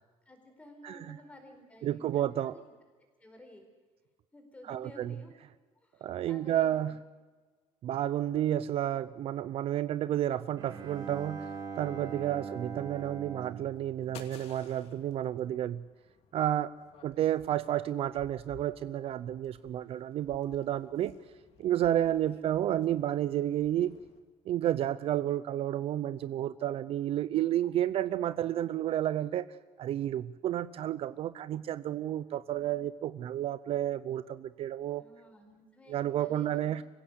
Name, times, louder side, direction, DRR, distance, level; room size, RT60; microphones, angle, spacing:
voice 1, 0.3-2.6 3.2-3.6 4.3-5.3 5.8-6.9 12.2-12.5 35.0-36.8, left 1 dB, 10° left, 4 dB, 4.5 m, -53 dB
voice 2, 0.8-1.2 1.8-2.5 4.7-5.1 6.0-6.9 7.8-11.5 11.8-15.8 16.3-16.7 17.0-21.1 21.6-24.0 24.5-29.5 29.8-35.0 35.9-36.8, right 12 dB, 50° right, 15 dB, 0.6 m, -31 dB
Bowed string instrument, 10.6-14.9, right 5 dB, 35° right, 3.3 m, -42 dB
sound 1, 12.9-24.2, left 7 dB, 55° left, 2.9 m, -58 dB
25.0 x 16.0 x 8.1 m, 1.4 s
cardioid pair, 160°, 13 cm